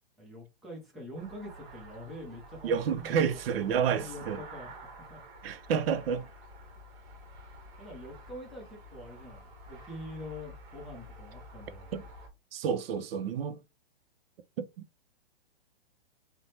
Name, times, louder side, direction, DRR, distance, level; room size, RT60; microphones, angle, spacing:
voice 1, 0.2-3.2 3.9-5.2 7.8-11.9, left 1 dB, ahead, 0.5 m, -45 dB
sound 1, 1.1-12.3, right 1 dB, 50° right, 1.0 m, -49 dB
voice 2, 2.6-4.4 5.4-6.3 11.9-12.1 12.5-13.6 14.6-14.9, right 7 dB, 75° right, 0.5 m, -30 dB
3.1 x 2.1 x 2.7 m
hypercardioid pair, 155°, 30 cm